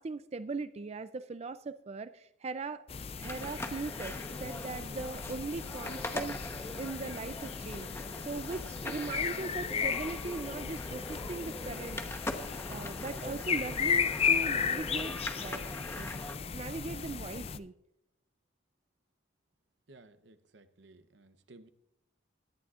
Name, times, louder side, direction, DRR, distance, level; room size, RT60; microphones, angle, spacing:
voice 1, 0.0-2.8 3.2-7.9 8.2-12.0 12.7-16.1 16.5-17.7, right 3 dB, 35° right, 13 dB, 0.4 m, -40 dB
sound 1, 2.9-17.6, left 6 dB, 30° left, 0.4 m, -35 dB
sound 2, 3.2-16.4, left 1 dB, 15° left, 0.9 m, -42 dB
voice 2, 19.9-21.7, right 2 dB, 70° right, 11 dB, 0.8 m, -57 dB
17.5 x 11.0 x 2.5 m, 0.81 s
head